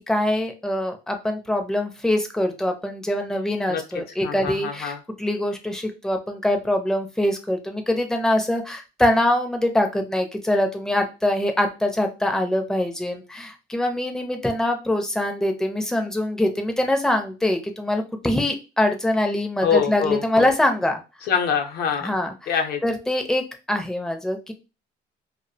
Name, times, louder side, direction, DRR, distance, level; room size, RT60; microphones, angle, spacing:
voice 1, 0.1-21.0 22.0-22.5 22.8-24.5, left 1 dB, 5° left, 5 dB, 0.4 m, -24 dB
voice 2, 4.2-5.0 19.6-20.5 21.3-22.1 22.5-22.8, left 7 dB, 70° left, 4 dB, 0.6 m, -24 dB
2.3 x 2.1 x 2.6 m, 0.29 s
cardioid pair, 110°, 17 cm